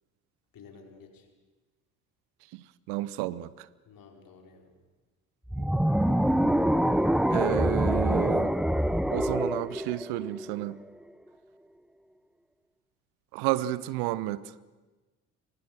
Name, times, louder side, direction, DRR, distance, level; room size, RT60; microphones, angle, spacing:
voice 1, 0.5-1.3 3.8-4.7, left 5 dB, 50° left, 4.8 m, -52 dB
voice 2, 2.5-3.7 7.3-8.5 9.1-10.8 13.3-14.4, right 15 dB, 60° right, 0.9 m, -31 dB
sound 1, 5.5-10.7, equal, ahead, 0.9 m, -25 dB
29.0 x 24.0 x 6.4 m
figure-of-eight pair, 50°, 44 cm